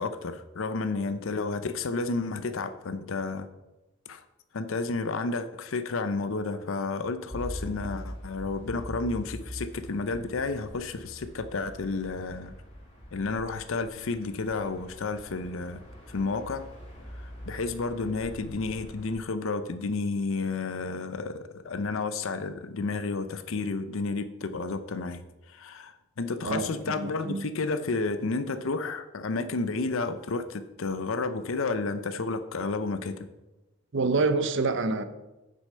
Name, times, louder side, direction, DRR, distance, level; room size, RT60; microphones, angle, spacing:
voice 1, 0.0-3.5 4.1-4.2 4.5-12.5 13.1-15.8 16.1-16.6 17.2-25.2 25.5-33.3, left 3 dB, 65° left, 0.6 m, -31 dB
sound 1, 7.3-19.2, equal, 25° left, 3.3 m, -43 dB
voice 2, 26.4-27.5 33.9-35.0, right 3 dB, 60° right, 0.7 m, -27 dB
8.3 x 6.4 x 5.5 m
head